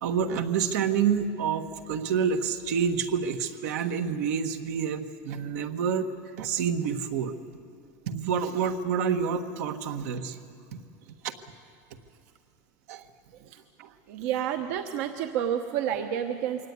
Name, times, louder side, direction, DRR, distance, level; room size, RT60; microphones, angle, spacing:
voice 1, 0.0-6.1 6.4-7.3 8.1-10.4 11.2-11.3 12.9-13.0 13.8-13.9, right 7 dB, 85° right, 7 dB, 1.5 m, -28 dB
voice 2, 14.1-16.7, right 9 dB, 70° right, 6 dB, 1.1 m, -29 dB
23.0 x 18.0 x 9.5 m, 2.4 s
cardioid pair, 165°, 8 cm